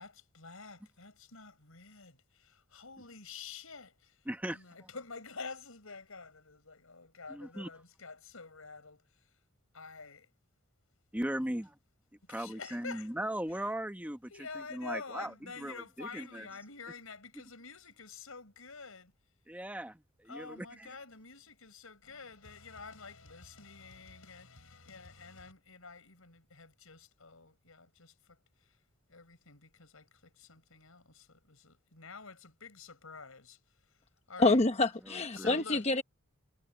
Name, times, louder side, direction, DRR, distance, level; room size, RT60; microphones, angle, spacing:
voice 1, 0.0-4.2 4.5-9.0 9.7-10.3 11.3-11.6 12.3-13.1 14.3-19.1 20.3-28.1 29.1-33.6 34.3-34.6 35.3-35.8, left 4 dB, 85° left, 5.0 m, -48 dB
voice 2, 4.3-4.6 7.3-7.7 11.1-11.8 12.3-16.5 19.5-20.9 35.1-35.6, right 1 dB, 5° right, 1.2 m, -38 dB
voice 3, 34.4-36.0, left 2 dB, 30° left, 1.0 m, -27 dB
head